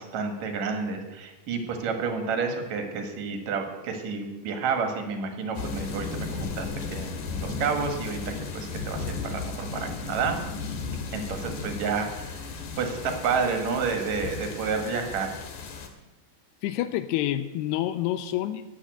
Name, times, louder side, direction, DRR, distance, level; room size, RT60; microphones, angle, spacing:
voice 1, 0.0-10.4 11.1-12.4 12.8-15.3, right 5 dB, 55° right, 5 dB, 2.5 m, -30 dB
sound 1, 5.6-15.9, left 4 dB, 60° left, 2.8 m, -35 dB
voice 2, 16.6-18.6, left 13 dB, 85° left, 11 dB, 2.6 m, -28 dB
12.0 x 8.7 x 7.8 m, 1.1 s
omnidirectional pair, 4.9 m